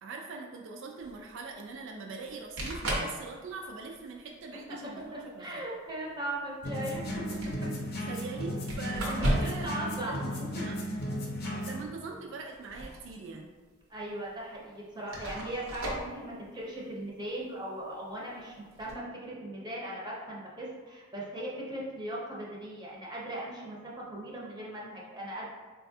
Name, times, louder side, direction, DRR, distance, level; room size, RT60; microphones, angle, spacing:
voice 1, 0.0-5.4 7.9-10.8 11.4-13.5, right 4 dB, 65° right, 0 dB, 0.4 m, -42 dB
sound 1, 1.0-1.1 2.3-2.4 2.6-3.2 3.6-4.0 5.0-5.1 6.8-7.6 8.7-9.7 10.0-10.1 12.4-13.1 13.5-13.6 14.4-14.5 15.1-16.1 18.7-18.9, right 1 dB, 90° right, 0.9 m, -34 dB
voice 2, 5.1-7.0 9.0-10.2 10.5-10.6 10.9-11.0 11.4-11.6 13.9-25.5, right 1 dB, 20° right, -4 dB, 0.6 m, -39 dB
sound 2, 6.6-11.9, equal, 50° left, 0.6 m, -35 dB
4.0 x 2.2 x 2.7 m, 1.4 s
head